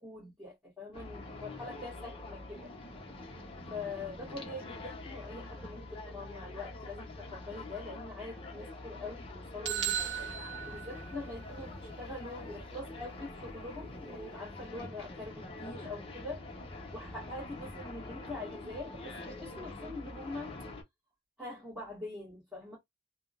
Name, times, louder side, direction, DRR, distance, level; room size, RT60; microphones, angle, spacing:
voice 1, 0.0-2.7 3.7-10.1 10.6-16.5 16.9-20.5 21.4-22.8, left 2 dB, 5° right, 1.6 m, -44 dB
sound 1, 0.9-20.8, left 2 dB, 30° left, 0.8 m, -45 dB
sound 2, 9.6-11.6, right 9 dB, 85° right, 0.8 m, -36 dB
3.5 x 2.1 x 2.4 m
head